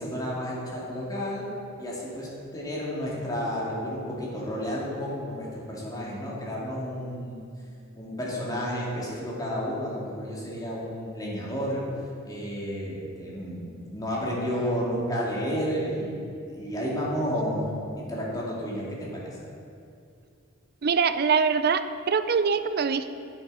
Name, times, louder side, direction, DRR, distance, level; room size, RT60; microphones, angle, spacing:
voice 1, 0.0-1.4 1.8-7.4 7.9-11.8 12.2-17.7 18.0-19.3, equal, 20° left, -5 dB, 2.4 m, -31 dB
voice 2, 20.8-23.1, right 5 dB, 50° right, 11 dB, 0.5 m, -23 dB
9.8 x 8.0 x 5.5 m, 2.4 s
head